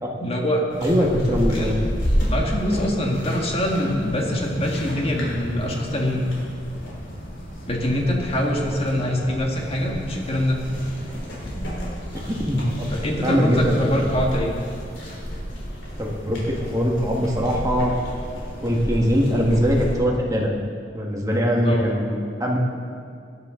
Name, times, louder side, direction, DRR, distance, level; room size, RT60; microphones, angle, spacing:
voice 1, 0.2-0.6 1.0-1.1 1.5-1.8 2.1-6.3 7.7-10.6 13.0-14.5 21.6-21.9, left 1 dB, 35° left, 0 dB, 1.7 m, -24 dB
sound 1, 0.7-20.0, equal, 80° left, 3.7 m, -31 dB
voice 2, 0.8-1.9 12.2-13.9 16.0-17.9 18.6-20.5 20.9-22.6, equal, 20° right, -2 dB, 1.6 m, -22 dB
18.0 x 10.5 x 3.8 m, 2.3 s
head